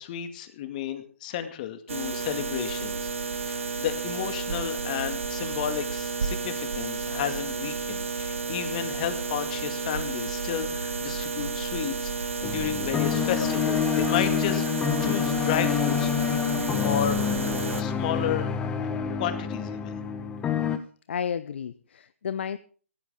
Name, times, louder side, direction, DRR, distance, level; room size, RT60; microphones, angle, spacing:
voice 1, 0.0-3.1 3.5-18.5 18.8-18.9 19.2-20.0, left 10 dB, 35° left, 8 dB, 2.1 m, -32 dB
sound 1, 1.9-17.8, right 4 dB, 65° right, 2.1 m, -32 dB
sound 2, 12.4-20.8, left 8 dB, 10° left, 1.2 m, -27 dB
voice 2, 21.1-22.6, left 7 dB, 55° left, 14 dB, 0.7 m, -32 dB
17.0 x 14.5 x 3.7 m, 0.42 s
figure-of-eight pair, 140°, 8 cm